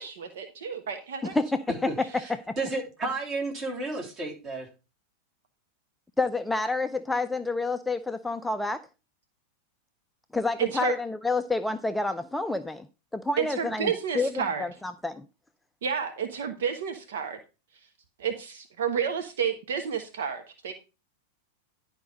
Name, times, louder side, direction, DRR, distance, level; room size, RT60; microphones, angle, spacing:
voice 1, 0.0-1.3 10.6-10.9 13.4-14.6 15.8-17.4 18.2-20.7, right 7 dB, 60° right, 6 dB, 1.2 m, -30 dB
voice 2, 1.2-2.1 2.5-2.6 6.2-8.8 10.3-12.9 13.1-15.2, left 3 dB, 5° left, 9 dB, 0.5 m, -29 dB
voice 3, 1.9-2.3 2.6-4.7, right 2 dB, 30° right, 1 dB, 3.4 m, -32 dB
11.0 x 5.1 x 5.1 m, 0.31 s
figure-of-eight pair, 90°, 0 cm